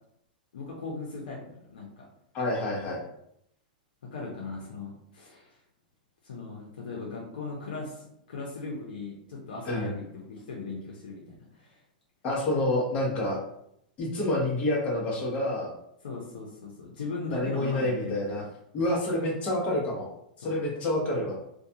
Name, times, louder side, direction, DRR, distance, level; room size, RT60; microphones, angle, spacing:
voice 1, 0.5-2.0 4.1-5.6 6.2-11.8 16.0-18.2 20.4-20.6, left 3 dB, 90° left, -3 dB, 0.6 m, -38 dB
voice 2, 2.3-3.0 9.7-10.0 12.2-13.4 14.0-15.7 17.3-18.4 18.7-20.1 20.4-21.4, left 1 dB, 30° left, -3 dB, 0.8 m, -28 dB
2.4 x 2.2 x 2.7 m, 0.76 s
hypercardioid pair, 140°, 5 cm